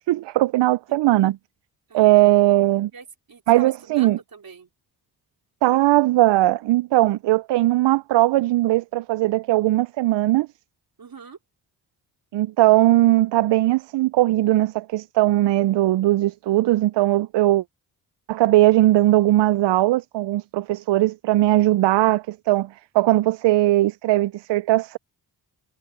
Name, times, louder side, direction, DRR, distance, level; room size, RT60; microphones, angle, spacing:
voice 1, 0.1-1.4 1.9-2.9 3.5-4.2 5.6-10.5 12.3-17.6 18.3-22.7 22.9-25.0, right 16 dB, 75° right, 0.5 m, -19 dB
voice 2, 2.9-4.7 11.0-11.4, right 5 dB, 55° right, 4.3 m, -43 dB
cardioid pair, 55°, 43 cm